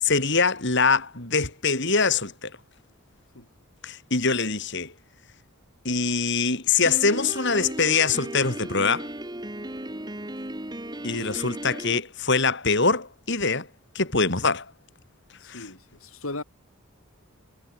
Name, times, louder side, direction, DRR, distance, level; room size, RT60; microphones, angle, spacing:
voice 1, 0.0-2.5 3.8-4.9 5.8-9.1 11.0-13.7 13.9-14.6 15.5-15.7, left 4 dB, 55° left, 5.0 m, -23 dB
Piano, 6.9-12.0, right 1 dB, 20° right, 3.8 m, -36 dB
voice 2, 15.4-16.4, left 2 dB, 75° left, 4.6 m, -37 dB
head